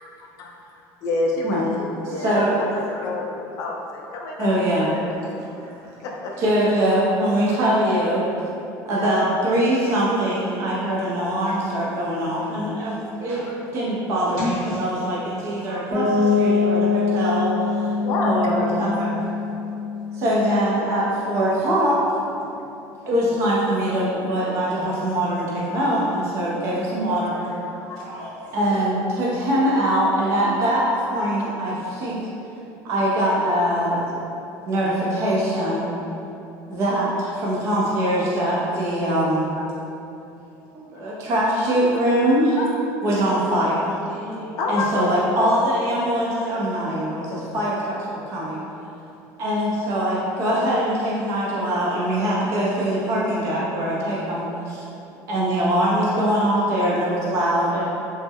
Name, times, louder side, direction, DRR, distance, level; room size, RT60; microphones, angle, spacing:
voice 1, 1.0-4.6 4.8-5.1 6.0-6.4 8.9-9.2 13.5-13.6 15.7-15.8 18.0-18.3 27.9-28.0 39.5-39.6 42.6-42.7 44.6-45.1, left 3 dB, 45° left, -1 dB, 0.4 m, -28 dB
voice 2, 2.0-2.6 4.4-4.9 6.4-8.2 8.9-13.5 13.7-17.9 18.2-19.2 20.1-22.0 23.1-27.5 28.5-32.2 32.8-34.3 34.7-35.9 36.7-39.5 40.7-42.6 43.0-44.0 44.7-48.6 49.4-54.9 55.3-57.8, right 1 dB, 40° right, -6 dB, 0.5 m, -22 dB
voice 3, 13.2-13.6 14.4-14.8 17.8-17.9 27.1-28.8 44.1-44.6, left 1 dB, 70° right, -7 dB, 1.1 m, -36 dB
Piano, 15.9-21.6, left 4 dB, 20° right, 0.9 m, -24 dB
3.2 x 2.0 x 3.5 m, 2.8 s
cardioid pair, 160°, 8 cm